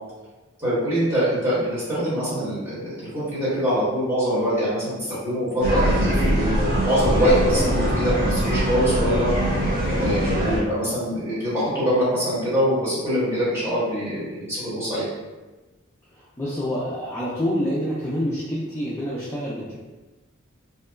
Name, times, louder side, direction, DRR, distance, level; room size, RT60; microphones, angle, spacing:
voice 1, 0.6-9.3 9.9-15.0, equal, 10° right, -11 dB, 1.2 m, -24 dB
sound 1, 5.6-10.6, equal, 45° right, 0.7 m, -22 dB
voice 2, 16.1-19.8, equal, 15° left, -8 dB, 0.3 m, -27 dB
2.8 x 2.2 x 2.2 m, 1.2 s
head